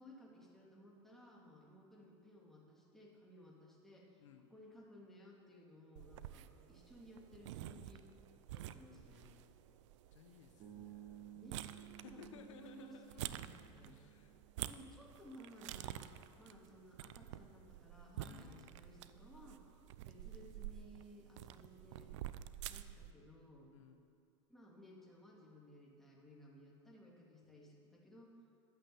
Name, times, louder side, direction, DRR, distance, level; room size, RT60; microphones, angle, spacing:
voice 1, 0.0-8.1 8.5-9.3 11.3-14.0 14.7-19.6 20.1-22.1 22.7-23.7 24.5-28.3, equal, ahead, -3 dB, 3.0 m, -59 dB
sound 1, 6.0-23.1, right 12 dB, 75° right, 0.5 m, -50 dB
voice 2, 9.1-9.8 10.1-11.4 12.0-13.3 13.8-14.4 18.2-18.8 23.7-24.0, left 7 dB, 85° left, 7 dB, 0.9 m, -60 dB
Bass guitar, 10.6-14.7, right 12 dB, 50° right, 2.3 m, -56 dB
12.0 x 8.8 x 7.4 m, 2.3 s
hypercardioid pair, 100°, 15 cm